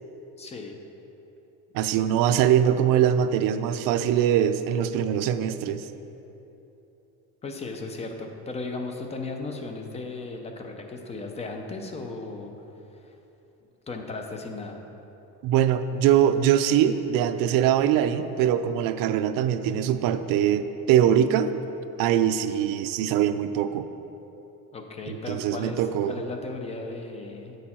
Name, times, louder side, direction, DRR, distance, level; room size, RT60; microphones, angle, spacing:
voice 1, 0.4-0.8 7.4-12.5 12.9-13.1 13.9-14.8 24.7-27.6, left 3 dB, 20° left, 4 dB, 0.5 m, -36 dB
voice 2, 1.7-5.9 15.4-21.5 22.0-23.9 25.1-26.2, right 10 dB, 70° right, 10 dB, 0.5 m, -22 dB
8.1 x 6.5 x 4.2 m, 3.0 s
cardioid pair, 170°, 35 cm